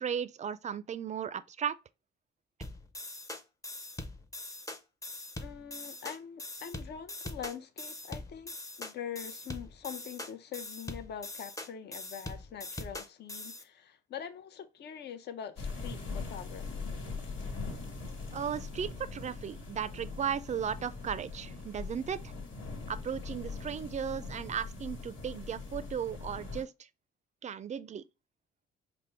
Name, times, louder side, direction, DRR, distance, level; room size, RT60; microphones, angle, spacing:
voice 1, 0.0-1.8 18.3-22.3 22.9-26.7 27.4-28.0, right 8 dB, 35° right, 0.4 m, -36 dB
sound 1, 2.6-13.6, left 2 dB, 15° left, 0.7 m, -42 dB
voice 2, 5.4-16.9, left 8 dB, 60° left, 0.6 m, -44 dB
sound 2, 15.6-26.6, left 4 dB, 75° left, 1.6 m, -41 dB
5.1 x 2.0 x 4.3 m
cardioid pair, 90°, 20 cm